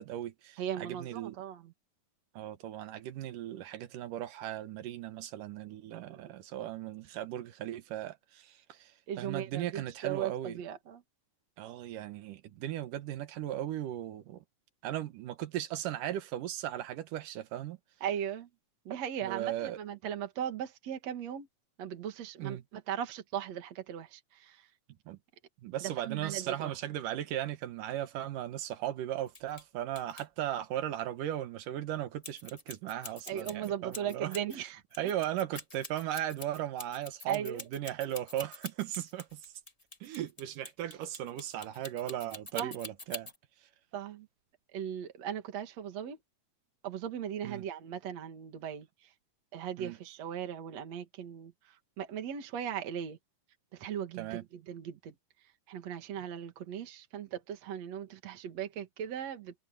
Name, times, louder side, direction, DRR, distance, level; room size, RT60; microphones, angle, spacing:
voice 1, 0.0-1.4 2.4-8.9 9.2-10.6 11.6-14.4 14.8-17.8 19.2-19.8 22.4-22.6 25.1-25.2 25.6-34.3 35.0-39.4 40.0-43.3 47.4-47.6 49.8-50.0 54.2-54.4, right 12 dB, 90° right, 2.9 m, -37 dB
voice 2, 0.6-1.7 5.9-6.2 9.1-11.0 18.0-18.5 18.9-21.5 21.8-24.7 25.8-26.7 33.3-34.8 37.3-37.6 42.5-42.8 43.9-44.3 44.7-46.2 46.8-49.1 49.5-53.2 53.7-55.1 55.7-59.5, right 9 dB, 60° right, 3.0 m, -38 dB
sound 1, 29.3-29.6 29.9-30.2 32.2-34.6 34.9-43.4, left 2 dB, 35° left, 0.6 m, -45 dB
omnidirectional pair, 3.6 m